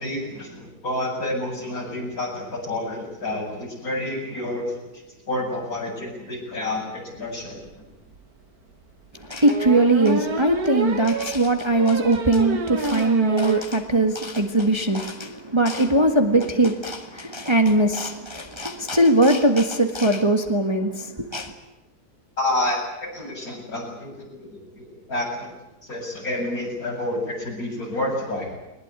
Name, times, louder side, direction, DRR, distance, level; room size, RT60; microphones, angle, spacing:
voice 1, 0.0-4.8 5.3-7.6 22.4-25.5 25.8-28.6, left 1 dB, 60° left, 8.5 m, -29 dB
sound 1, 7.7-7.8 8.1-8.2 9.4-13.7 14.1-14.2 14.4-14.5 14.7-15.0, right 4 dB, 65° right, 2.2 m, -29 dB
voice 2, 9.3-21.5, right 2 dB, 15° right, 1.7 m, -20 dB
22.0 x 20.5 x 9.8 m
omnidirectional pair, 1.7 m